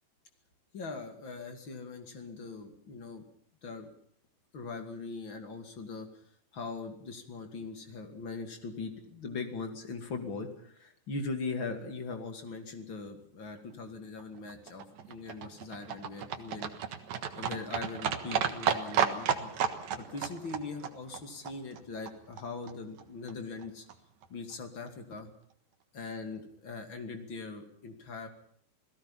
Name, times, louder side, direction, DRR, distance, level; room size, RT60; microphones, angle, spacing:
voice 1, 0.7-3.2 3.6-3.9 4.5-6.1 6.5-16.7 17.4-19.5 20.0-23.9 24.3-25.3 25.9-28.3, left 4 dB, 35° left, 6 dB, 2.5 m, -40 dB
Livestock farm animals working animals, 14.2-22.4 22.7-22.8 23.0-23.1 23.3-23.4 23.6-23.7 23.9-24.0 24.2-24.3 24.5-24.6 24.9-25.0, right 8 dB, 60° right, 2.2 m, -33 dB
28.5 x 17.5 x 5.7 m, 0.62 s
omnidirectional pair, 5.0 m